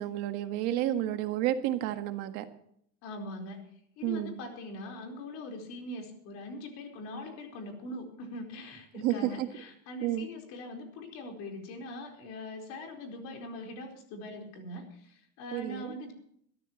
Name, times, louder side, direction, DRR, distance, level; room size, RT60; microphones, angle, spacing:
voice 1, 0.0-2.4 4.0-4.4 8.9-9.5 10.0-10.3 15.5-15.9, right 12 dB, 50° right, 7 dB, 1.7 m, -31 dB
voice 2, 3.0-3.6 4.0-16.1, left 1 dB, 45° left, 3 dB, 4.6 m, -42 dB
21.5 x 14.0 x 3.1 m, 0.67 s
cardioid pair, 175°, 36 cm